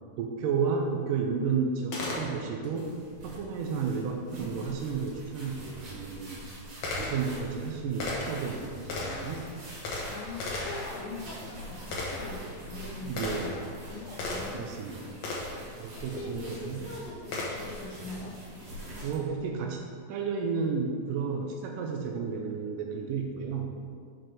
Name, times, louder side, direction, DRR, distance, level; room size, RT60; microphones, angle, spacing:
voice 1, 0.2-2.9 3.2-6.4 7.0-9.5 13.0-13.6 14.5-15.1 15.8-16.9 19.0-23.7, right 5 dB, 80° right, 2 dB, 2.1 m, -32 dB
Gunshot gunfire, 1.9-2.7 5.1-5.2 5.9-14.7 15.2-15.7 17.3-17.8, left 2 dB, 60° left, 2.1 m, -36 dB
sound 1, 2.8-19.2, equal, 60° right, 3.2 m, -45 dB
voice 2, 10.1-14.7 15.0-15.2 16.0-18.4, left 3 dB, 75° left, -2 dB, 2.7 m, -43 dB
6.5 x 6.1 x 4.8 m, 2.1 s
omnidirectional pair, 4.1 m